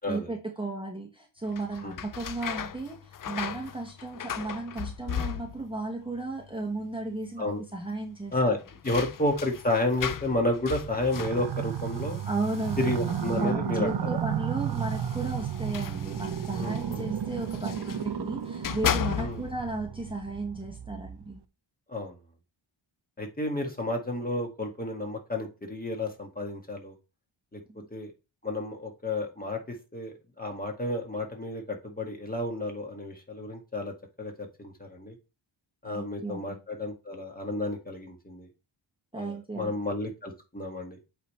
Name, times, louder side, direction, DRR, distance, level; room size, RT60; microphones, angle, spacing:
voice 1, 0.1-8.3 12.3-13.0 13.3-21.4 27.7-27.9 35.8-36.6 39.1-39.7, right 2 dB, 10° right, 0 dB, 1.1 m, -34 dB
sound 1, 1.5-5.9 6.1-6.8 7.1-7.2 8.3-13.7 14.6-18.1 18.5-19.7, left 8 dB, 45° left, 0.5 m, -37 dB
voice 2, 8.8-12.2 12.8-14.2 16.6-17.0 19.2-19.4 21.9-22.2 23.2-26.9 27.5-27.6 27.9-28.1 28.4-35.2 35.8-38.5 39.1-41.0, left 1 dB, 20° left, 2 dB, 1.7 m, -31 dB
Azathoth Calling, 10.8-21.4, right 9 dB, 55° right, 0.8 m, -33 dB
8.2 x 3.5 x 4.2 m, 0.29 s
wide cardioid pair, 125°, 49 cm